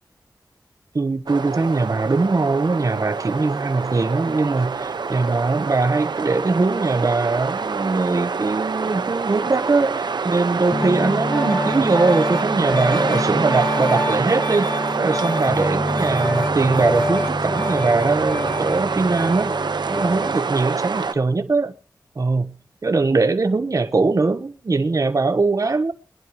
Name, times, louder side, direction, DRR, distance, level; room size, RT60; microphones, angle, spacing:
voice 1, 0.9-14.7 14.9-19.6 19.9-21.7 22.2-22.5 22.8-25.9, right 3 dB, 45° right, 1.0 m, -21 dB
sound 1, 1.3-21.1, right 5 dB, 75° right, 1.0 m, -26 dB
Piano, 10.7-20.4, left 1 dB, 25° left, 0.9 m, -26 dB
22.5 x 10.5 x 3.0 m
wide cardioid pair, 65°, 7 cm